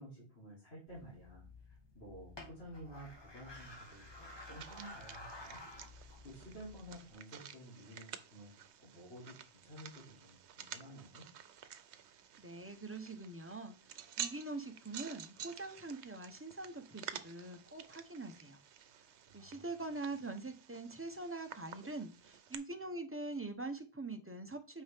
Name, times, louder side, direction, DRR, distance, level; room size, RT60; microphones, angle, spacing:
voice 1, 0.0-5.6 6.2-8.5 8.8-11.3 19.3-19.6, equal, 65° left, -7 dB, 3.3 m, -52 dB
sound 1, 0.9-7.1, left 2 dB, 25° left, 1.4 m, -53 dB
sound 2, 3.5-22.5, right 9 dB, 85° right, 1.0 m, -51 dB
voice 2, 12.4-18.6 19.3-24.8, right 2 dB, 15° right, 6 dB, 0.8 m, -44 dB
8.6 x 5.6 x 3.5 m, 0.33 s
omnidirectional pair, 1.1 m